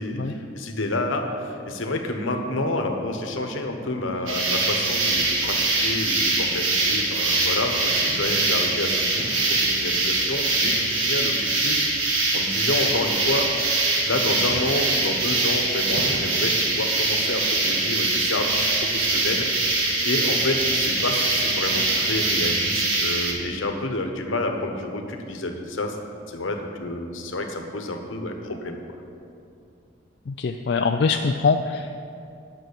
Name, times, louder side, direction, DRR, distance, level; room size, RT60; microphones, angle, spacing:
voice 1, 0.0-11.8 12.3-13.5 14.0-26.0 26.3-28.8, left 2 dB, 75° left, 4 dB, 1.1 m, -29 dB
sound 1, 4.3-23.3, right 2 dB, 85° right, 1.8 m, -23 dB
voice 2, 30.3-31.9, left 4 dB, 55° left, 5 dB, 0.4 m, -23 dB
9.3 x 6.2 x 8.3 m, 2.5 s
head